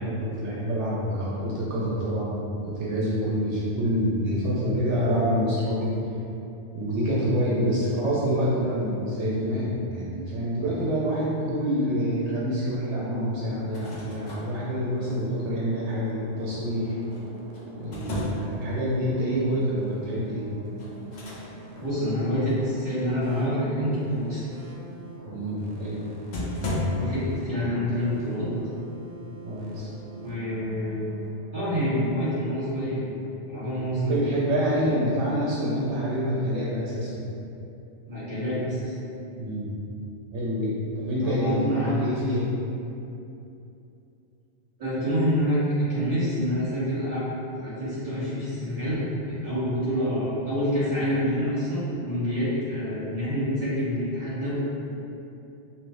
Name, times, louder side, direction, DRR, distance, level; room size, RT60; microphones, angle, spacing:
voice 1, 0.0-5.9 6.7-17.0 17.8-20.5 25.2-26.0 29.4-29.9 34.1-37.2 39.4-39.7 40.3-42.5, equal, 85° right, -7 dB, 0.9 m, -27 dB
sound 1, 13.6-14.5 17.1-18.7 20.8-21.5 21.8-21.9 25.8-25.9 26.3-26.8, left 1 dB, 55° left, 0.5 m, -33 dB
sound 2, 13.9-31.3, right 1 dB, 60° right, 0.5 m, -44 dB
voice 2, 21.8-24.4 27.0-28.5 30.2-31.1 31.5-33.0 33.5-34.2 38.1-38.9 41.2-41.9 44.8-45.6 45.9-47.3 47.6-54.5, equal, 30° right, -13 dB, 1.6 m, -27 dB
3.2 x 2.7 x 2.5 m, 2.8 s
omnidirectional pair, 1.2 m